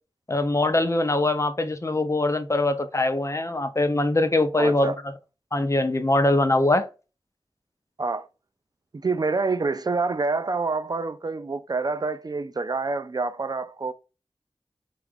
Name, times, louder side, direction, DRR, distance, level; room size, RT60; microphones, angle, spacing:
voice 1, 0.3-4.9 5.5-6.9, left 2 dB, 35° left, 0.5 m, -22 dB
voice 2, 4.6-5.0 8.0-8.3 8.9-13.9, right 3 dB, 45° right, 0.4 m, -27 dB
4.4 x 2.4 x 3.4 m
wide cardioid pair, 50°, 9 cm